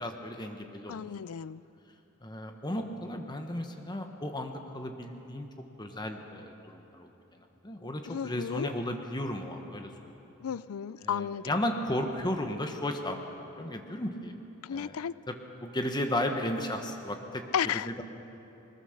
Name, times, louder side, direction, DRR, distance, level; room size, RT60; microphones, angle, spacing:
voice 1, 0.0-1.0 2.2-5.5 5.8-10.1 11.0-14.3 14.7-15.0 15.3-15.4 15.6-17.4 17.7-18.0, left 1 dB, 20° left, 4 dB, 1.1 m, -34 dB
voice 2, 0.9-1.6 8.1-8.7 10.4-11.5 14.6-15.1 17.5-17.9, left 8 dB, 75° left, 18 dB, 0.4 m, -33 dB
21.5 x 20.0 x 6.6 m, 3.0 s
head